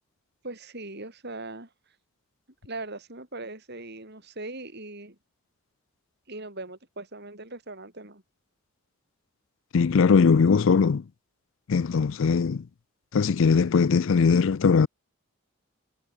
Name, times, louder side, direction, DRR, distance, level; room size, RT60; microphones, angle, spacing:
voice 1, 0.4-1.7 2.6-5.2 6.3-8.2, right 2 dB, 50° right, 5.3 m, -40 dB
voice 2, 9.7-11.0 11.7-12.7 13.1-14.9, left 5 dB, 60° left, 0.4 m, -20 dB
head